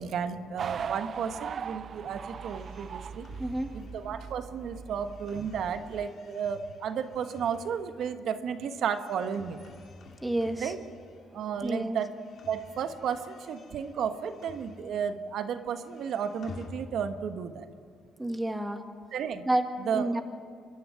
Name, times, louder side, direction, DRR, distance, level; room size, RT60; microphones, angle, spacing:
voice 1, 0.0-3.3 3.7-9.6 10.6-10.8 11.3-12.1 12.5-17.7 19.1-19.4 19.8-20.2, right 7 dB, 70° right, 9 dB, 1.3 m, -33 dB
sound 1, 0.6-6.1, right 7 dB, 55° right, 0.5 m, -39 dB
sound 2, 2.2-11.5 11.8-15.2 15.5-17.4, left 3 dB, 60° left, 2.4 m, -51 dB
voice 2, 3.4-3.7 10.2-10.7 11.6-12.0 18.2-18.8 19.4-19.7 19.9-20.2, right 1 dB, 10° right, 5 dB, 1.8 m, -29 dB
25.0 x 11.0 x 9.6 m, 2.2 s
cardioid pair, 90°, 0 cm